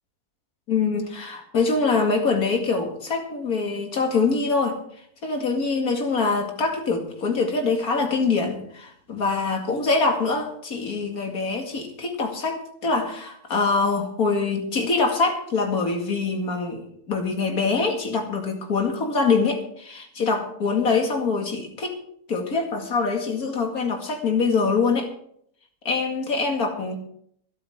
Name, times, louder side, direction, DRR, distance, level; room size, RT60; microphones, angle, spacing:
voice 1, 0.7-4.8 5.2-22.0 22.3-25.1 25.8-27.0, left 4 dB, 75° left, 3 dB, 2.7 m, -24 dB
25.0 x 8.5 x 3.7 m, 0.65 s
omnidirectional pair, 1.6 m